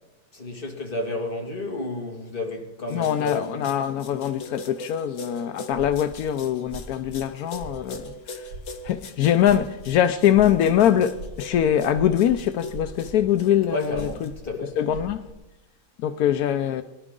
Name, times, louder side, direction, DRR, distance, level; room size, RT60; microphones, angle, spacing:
voice 1, 0.3-3.6 13.7-14.8, left 2 dB, 25° left, 2.0 m, -31 dB
voice 2, 2.9-8.5 8.8-14.3 14.8-15.2 16.0-16.8, left 10 dB, 75° left, 0.8 m, -23 dB
sound 1, 2.9-14.3, left 2 dB, 50° left, 1.0 m, -40 dB
sound 2, 5.7-6.2 6.5-7.3 7.5-8.0 8.4-9.0 9.3-14.5 14.7-15.3, right 1 dB, 75° right, 2.5 m, -41 dB
21.5 x 11.0 x 3.7 m
omnidirectional pair, 2.2 m